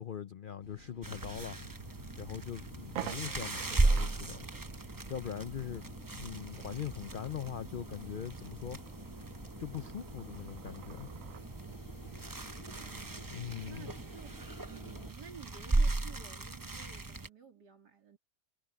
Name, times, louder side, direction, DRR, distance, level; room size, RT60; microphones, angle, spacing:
voice 1, 0.0-1.6 2.2-4.4 5.1-8.8 9.6-11.1 13.3-13.9, left 9 dB, 85° left, 0.4 m, -41 dB
sound 1, 0.6-15.1, left 1 dB, 55° left, 4.5 m, -52 dB
sound 2, 1.0-17.3, right 2 dB, 25° right, 0.4 m, -36 dB
sound 3, 1.9-2.0 2.4-2.5 2.8-11.5, right 12 dB, 65° right, 0.9 m, -49 dB
voice 2, 12.7-13.4 13.7-18.2, right 8 dB, 80° right, 3.3 m, -53 dB
omnidirectional pair, 1.7 m